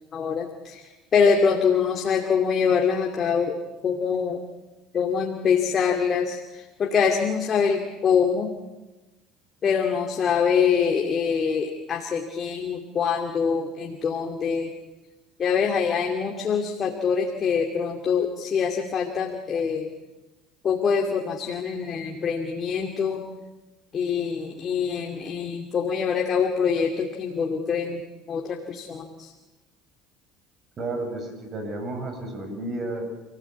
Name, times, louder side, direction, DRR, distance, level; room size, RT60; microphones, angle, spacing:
voice 1, 0.1-3.6 3.8-4.4 4.9-8.5 9.6-14.7 15.4-19.9 20.6-23.2 23.9-28.0 28.3-29.3, left 6 dB, 40° left, 3 dB, 2.5 m, -24 dB
voice 2, 30.8-33.2, right 2 dB, 45° right, 5 dB, 7.5 m, -32 dB
28.5 x 16.5 x 8.4 m, 1.1 s
supercardioid pair, 85°, 0 cm